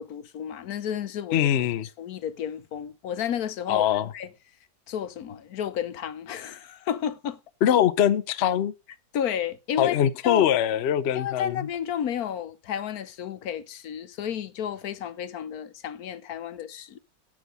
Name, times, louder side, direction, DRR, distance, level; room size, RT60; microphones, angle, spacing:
voice 1, 0.0-1.5 2.0-3.9 4.1-4.3 4.9-7.4 9.1-10.0 10.2-10.5 11.1-17.0, left 9 dB, 60° left, 1.2 m, -32 dB
voice 2, 1.3-1.9 3.7-4.1 7.6-8.7 9.8-11.7, left 10 dB, 75° left, 0.6 m, -22 dB
10.5 x 7.6 x 5.4 m
omnidirectional pair, 2.0 m